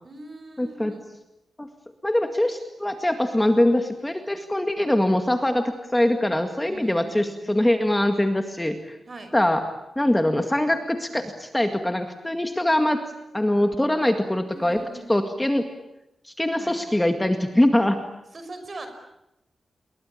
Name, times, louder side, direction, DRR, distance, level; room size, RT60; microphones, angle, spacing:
voice 1, 0.0-1.0 6.7-7.5 9.1-9.3 14.5-15.3 16.5-16.8 18.3-18.9, right 2 dB, 35° right, 8 dB, 5.7 m, -41 dB
voice 2, 0.6-0.9 1.6-1.7 2.0-9.0 9.3-9.6 10.0-13.0 13.3-14.8 15.1-15.7 16.4-18.0, left 1 dB, 10° left, 6 dB, 2.0 m, -22 dB
29.0 x 22.0 x 8.6 m, 0.86 s
wide cardioid pair, 145°, 0 cm